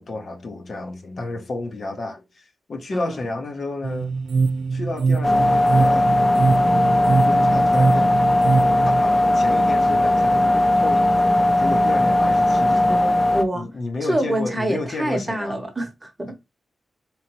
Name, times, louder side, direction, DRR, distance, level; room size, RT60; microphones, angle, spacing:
voice 1, 0.0-4.2 4.7-6.1 7.2-8.2 8.9-11.1 11.3-12.9 13.5-15.6, left 2 dB, 55° left, 0.8 m, -31 dB
sound 1, 3.8-9.0, right 4 dB, 75° right, 0.4 m, -23 dB
sound 2, 5.2-13.4, left 1 dB, 15° left, 0.6 m, -18 dB
voice 2, 12.9-13.7 14.0-16.3, right 1 dB, 15° right, 0.9 m, -26 dB
3.9 x 3.1 x 3.0 m
wide cardioid pair, 115°, 0 cm